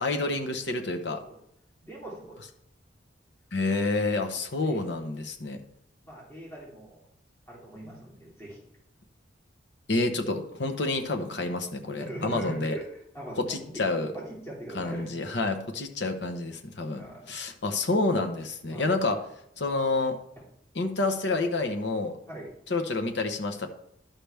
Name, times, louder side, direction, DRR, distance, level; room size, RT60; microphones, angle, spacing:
voice 1, 0.0-1.2 3.5-5.6 9.9-12.8 13.4-14.1 14.7-19.2 19.6-20.2 20.7-22.2 22.7-23.7, left 2 dB, 60° left, 5 dB, 0.9 m, -28 dB
voice 2, 1.8-2.4 4.6-5.0 5.3-5.4 6.0-7.0 7.5-8.6 12.0-13.8 14.1-15.4 17.0-17.4 18.7-18.9 22.3-22.5, right 1 dB, 15° left, -7 dB, 2.8 m, -41 dB
11.5 x 5.8 x 3.4 m, 0.75 s
head